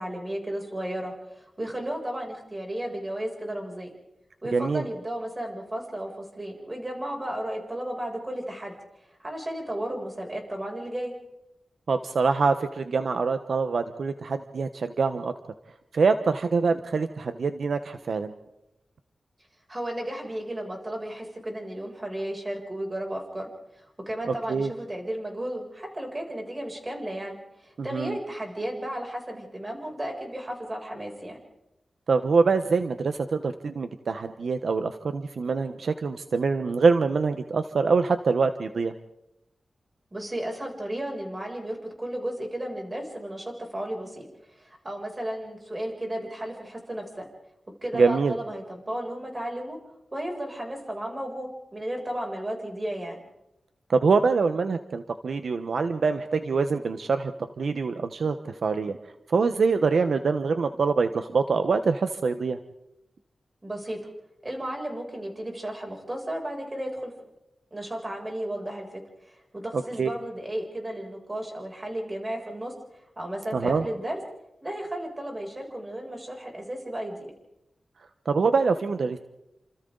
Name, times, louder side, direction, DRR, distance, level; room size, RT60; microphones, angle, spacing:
voice 1, 0.0-3.9 4.4-11.1 19.7-23.5 23.8-31.4 40.1-47.3 47.8-49.8 50.1-53.2 63.6-64.0 64.4-67.1 67.7-72.7 73.2-74.2 74.6-77.3, right 1 dB, 25° right, 1 dB, 7.0 m, -34 dB
voice 2, 4.5-4.9 11.9-15.3 15.9-18.3 24.5-24.7 27.9-28.2 32.1-38.9 47.9-48.3 53.9-57.3 57.6-59.0 59.3-62.6 69.7-70.1 73.5-73.8 78.3-79.2, right 4 dB, 75° right, 9 dB, 1.0 m, -24 dB
29.5 x 27.5 x 4.0 m, 0.88 s
wide cardioid pair, 95°, 0 cm